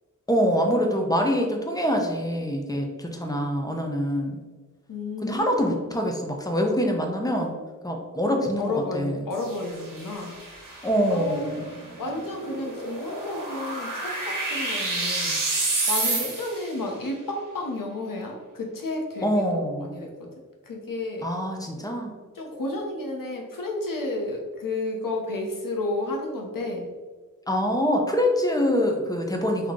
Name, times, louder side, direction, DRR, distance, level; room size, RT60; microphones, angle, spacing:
voice 1, 0.3-4.4 5.2-7.6 7.8-9.2 10.8-11.7 19.2-19.9 21.2-22.1 27.5-29.7, equal, 10° left, 1 dB, 0.6 m, -25 dB
voice 2, 4.9-6.0 8.6-10.4 10.7-11.5 12.0-20.3 20.6-21.3 21.9-22.0 22.3-26.9, left 2 dB, 85° left, 1 dB, 0.9 m, -32 dB
sound 1, 9.3-16.7, right 2 dB, 75° right, 1.2 m, -30 dB
3.7 x 2.8 x 3.7 m, 1.4 s
wide cardioid pair, 85°, 32 cm